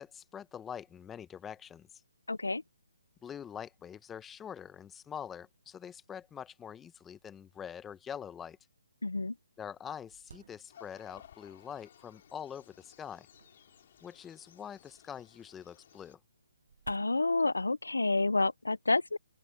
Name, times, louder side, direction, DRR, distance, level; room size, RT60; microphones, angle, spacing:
voice 1, 0.0-2.0 3.2-8.6 9.6-13.3 14.0-16.2, left 8 dB, 10° left, 0.9 m, -44 dB
voice 2, 2.3-2.6 9.0-9.3 16.9-19.2, left 2 dB, 85° left, 0.5 m, -29 dB
sound 1, 7.5-7.6 8.2-8.3 8.9-9.0 9.4-11.2 11.9-12.4 13.3-14.6 15.9-17.7, right 6 dB, 60° right, 1.2 m, -57 dB
sound 2, 10.7-16.1, left 9 dB, 45° left, 3.7 m, -59 dB
open air
figure-of-eight pair, 145°, 0 cm